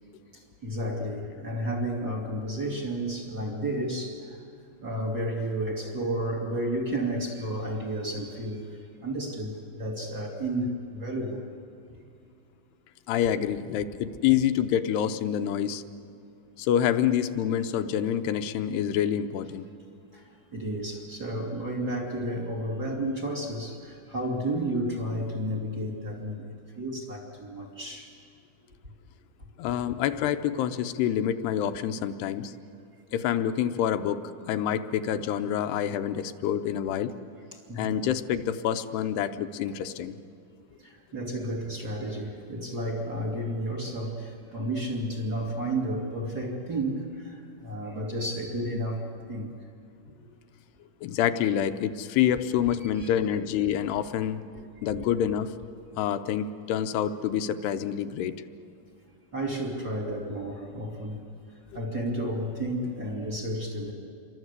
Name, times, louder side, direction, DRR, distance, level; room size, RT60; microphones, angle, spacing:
voice 1, 0.3-4.4 4.8-11.4 20.1-28.1 37.5-38.0 40.8-49.5 52.9-53.1 59.3-61.2 61.7-63.9, right 1 dB, 25° right, 0 dB, 2.6 m, -32 dB
voice 2, 13.1-15.8 16.6-19.7 29.6-32.5 33.1-37.1 37.8-40.2 51.0-54.4 54.8-55.5 55.9-58.3, left 10 dB, 85° left, 9 dB, 2.9 m, -27 dB
28.5 x 24.0 x 8.2 m, 2.5 s
omnidirectional pair, 4.7 m